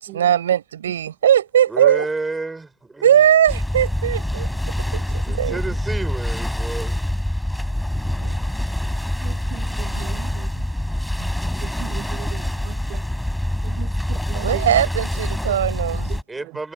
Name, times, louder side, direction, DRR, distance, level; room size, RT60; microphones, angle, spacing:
voice 1, 0.0-2.1 3.0-4.5 4.8-5.0 5.3-5.6 8.2-8.4 9.9-10.1 14.3-16.1, right 10 dB, 75° right, 7.5 m, -19 dB
voice 2, 1.7-3.2 5.2-7.0 16.3-16.7, right 3 dB, 10° right, 4.8 m, -30 dB
sound 1, 3.5-16.2, left 1 dB, 5° left, 6.8 m, -25 dB
voice 3, 9.2-10.5 11.8-12.3 12.9-13.0 13.8-13.9 14.3-14.6, right 19 dB, 50° right, 1.3 m, -37 dB
figure-of-eight pair, 80°, 0 cm